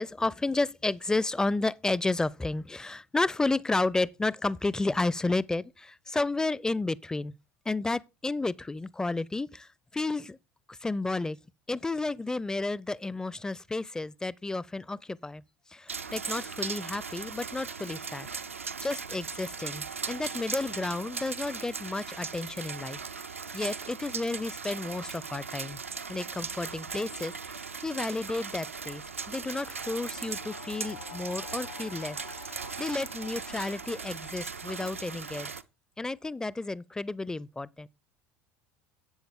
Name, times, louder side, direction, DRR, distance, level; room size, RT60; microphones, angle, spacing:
voice 1, 0.0-7.3 7.7-10.4 10.7-11.4 11.7-15.4 15.7-18.3 18.8-23.0 23.5-25.8 26.1-32.2 32.4-35.5 36.0-37.9, left 2 dB, 10° left, 0.4 m, -32 dB
sound 1, 15.9-35.6, right 5 dB, 85° right, 0.5 m, -38 dB
sound 2, 28.7-34.9, left 15 dB, 60° left, 0.6 m, -50 dB
11.0 x 7.9 x 3.5 m
figure-of-eight pair, 70°, 7 cm